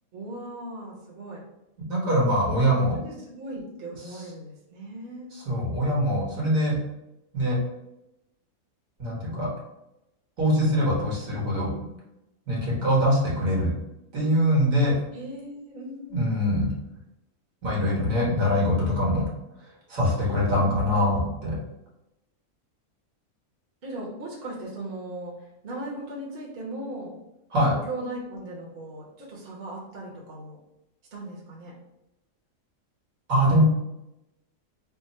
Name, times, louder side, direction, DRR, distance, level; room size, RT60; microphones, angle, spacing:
voice 1, 0.1-1.4 2.9-5.3 12.6-12.8 15.1-16.4 20.1-21.2 23.8-27.2 27.6-30.6 31.1-31.7, right 1 dB, 45° right, -4 dB, 1.0 m, -38 dB
voice 2, 1.9-3.0 4.1-4.2 5.3-6.8 7.3-7.6 9.0-9.5 10.4-11.7 12.5-13.7 14.1-15.0 16.1-16.7 17.6-19.3 19.9-21.6 27.5-27.7 33.3-33.6, equal, 70° right, -4 dB, 1.6 m, -23 dB
3.6 x 2.0 x 4.1 m, 0.90 s
omnidirectional pair, 1.5 m